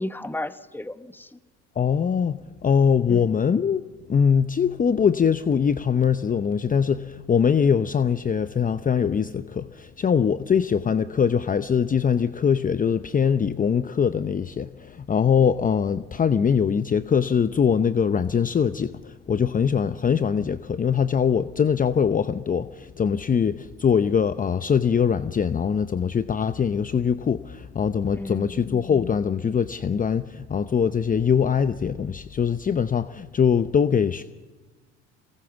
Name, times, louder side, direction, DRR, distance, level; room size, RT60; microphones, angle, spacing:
voice 1, 0.0-1.4 3.1-3.3 28.1-28.6, left 1 dB, 5° left, 1.1 m, -33 dB
voice 2, 1.8-3.8 4.1-34.2, left 7 dB, 25° left, 0.7 m, -22 dB
24.0 x 18.5 x 7.2 m
hypercardioid pair, 75°, 33 cm